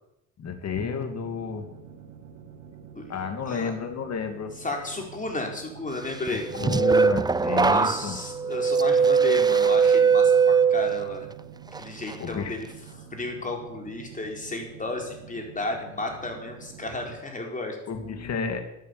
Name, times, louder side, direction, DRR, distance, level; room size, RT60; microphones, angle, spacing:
voice 1, 0.4-1.7 3.1-4.5 6.5-8.2 12.2-12.5 17.9-18.6, left 6 dB, 60° left, 6 dB, 2.6 m, -31 dB
sound 1, 1.2-17.2, right 7 dB, 80° right, 2.0 m, -47 dB
voice 2, 2.9-3.7 4.6-6.4 7.7-11.3 11.8-12.7 13.0-17.8, left 2 dB, 25° left, 2 dB, 4.5 m, -33 dB
sound 2, 6.3-11.3 11.7-12.1, right 5 dB, 15° right, 0.4 m, -21 dB
12.5 x 9.2 x 8.5 m, 0.87 s
cardioid pair, 90°, 30 cm